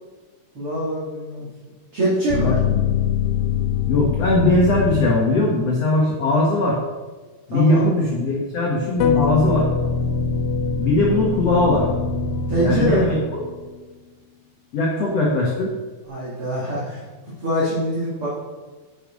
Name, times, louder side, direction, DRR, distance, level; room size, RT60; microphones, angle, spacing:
voice 1, 0.5-1.5 1.9-2.6 7.5-7.9 12.5-13.2 16.1-17.0 17.4-18.3, right 1 dB, 40° right, -8 dB, 2.9 m, -24 dB
sound 1, 2.3-5.4 9.0-13.6, left 6 dB, 90° left, 2.9 m, -23 dB
voice 2, 2.4-2.8 3.9-6.8 7.5-9.7 10.8-11.9 12.6-13.1 14.7-15.7, left 2 dB, 55° left, -3 dB, 1.9 m, -20 dB
10.0 x 7.3 x 5.3 m, 1.3 s
omnidirectional pair, 4.7 m